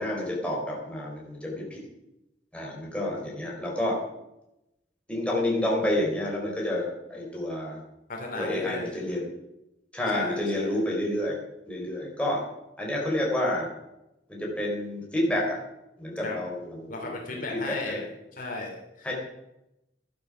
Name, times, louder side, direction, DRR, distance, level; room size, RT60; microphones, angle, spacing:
voice 1, 0.0-1.8 2.5-4.0 5.1-7.8 8.4-9.3 9.9-11.4 11.7-12.4 12.8-13.7 14.3-15.6 16.0-17.0 17.5-18.1 19.0-19.1, left 1 dB, 5° left, -3 dB, 4.0 m, -29 dB
voice 2, 8.1-9.0 10.1-10.8 16.2-16.4 16.9-18.1 18.3-19.1, left 2 dB, 50° left, 1 dB, 2.7 m, -36 dB
12.0 x 11.0 x 6.0 m, 0.90 s
head